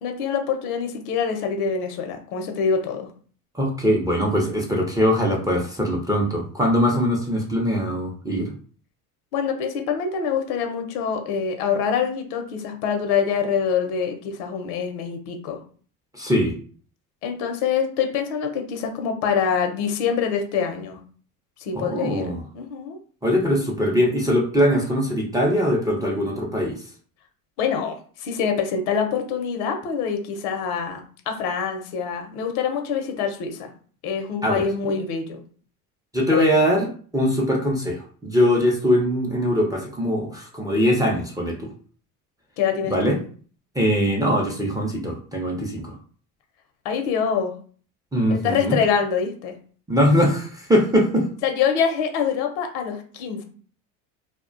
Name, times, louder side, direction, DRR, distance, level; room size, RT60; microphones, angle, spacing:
voice 1, 0.0-3.1 9.3-15.6 17.2-21.0 21.6-23.0 27.6-31.0 31.3-33.7 34.0-35.4 36.3-36.5 42.6-43.1 46.8-47.5 48.3-49.6 51.4-53.4, left 6 dB, 75° left, 5 dB, 0.7 m, -25 dB
voice 2, 3.5-8.5 16.1-16.5 21.7-22.4 23.2-26.8 34.4-34.6 36.1-36.9 37.1-41.7 42.9-43.2 43.7-46.0 48.1-48.8 49.9-51.3, equal, 10° right, -1 dB, 0.5 m, -21 dB
2.3 x 2.1 x 2.4 m, 0.44 s
hypercardioid pair, 80°, 46 cm